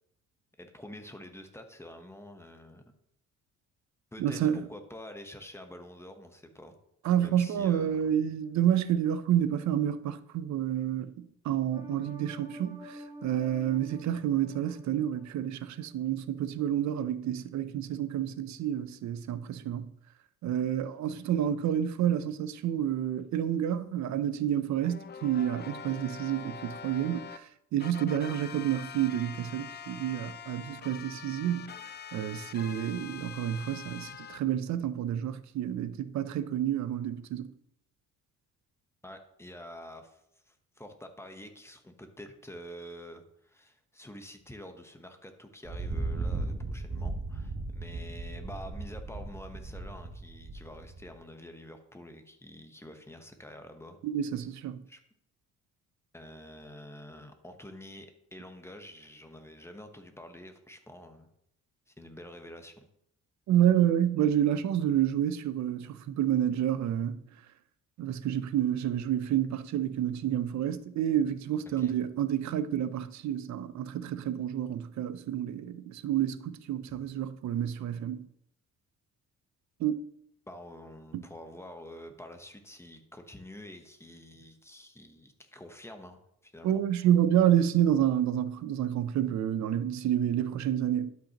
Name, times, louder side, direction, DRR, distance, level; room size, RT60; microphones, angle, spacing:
voice 1, 0.6-2.8 4.1-6.8 7.2-8.1 39.0-40.2 40.5-54.0 54.9-55.0 56.1-61.3 61.9-62.9 71.7-71.9 76.9-77.0 80.5-86.8, left 1 dB, 10° left, 1.0 m, -47 dB
voice 2, 4.2-4.7 7.0-19.9 20.4-31.8 32.1-37.5 54.0-54.8 63.5-67.2 68.0-78.3 79.8-80.0 81.1-81.2 86.6-91.1, right 10 dB, 65° right, 0.6 m, -29 dB
sound 1, 11.7-15.9 16.3-16.4, equal, 10° right, 1.3 m, -49 dB
sound 2, 24.8-27.4 27.8-34.4, left 7 dB, 35° left, 0.4 m, -44 dB
Thunder, 45.7-51.1, right 3 dB, 35° right, 1.1 m, -36 dB
11.5 x 5.4 x 2.9 m
cardioid pair, 90°, 30 cm